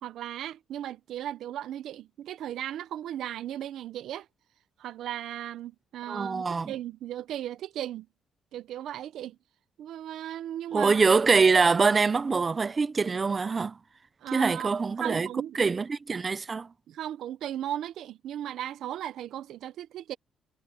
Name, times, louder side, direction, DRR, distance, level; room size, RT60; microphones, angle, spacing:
voice 1, 0.0-4.3 4.8-8.1 8.5-9.4 9.8-11.0 14.2-15.7 16.9-20.2, right 11 dB, 75° right, 0.8 m, -36 dB
voice 2, 6.1-6.7 10.7-13.8 14.3-15.3 15.5-16.7, right 4 dB, 35° right, 0.7 m, -24 dB
cardioid pair, 90°, 0 cm